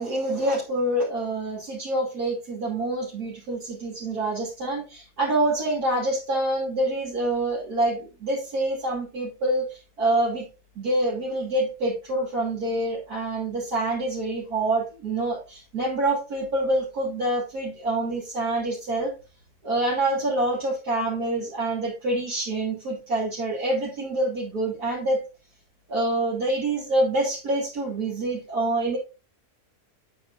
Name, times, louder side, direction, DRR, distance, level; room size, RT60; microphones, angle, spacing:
voice 1, 0.0-10.5 10.7-19.1 19.6-25.2 25.9-29.0, right 1 dB, 75° right, -5 dB, 3.3 m, -26 dB
8.5 x 7.1 x 2.5 m, 0.29 s
omnidirectional pair, 1.6 m